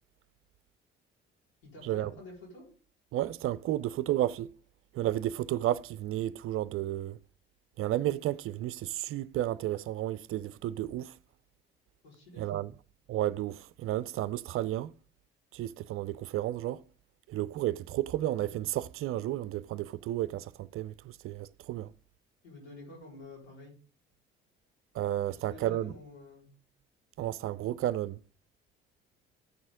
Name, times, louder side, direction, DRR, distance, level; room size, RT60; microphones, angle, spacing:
voice 1, 1.6-2.7 12.0-12.7 22.4-23.7 25.3-26.5, left 2 dB, 75° left, 4.4 m, -49 dB
voice 2, 3.1-4.5 4.9-7.2 7.8-11.1 12.4-12.7 13.1-14.9 15.5-16.8 17.3-21.9 24.9-25.9 27.2-28.2, right 13 dB, 45° right, 0.5 m, -32 dB
14.0 x 6.1 x 3.7 m
figure-of-eight pair, 45°, 31 cm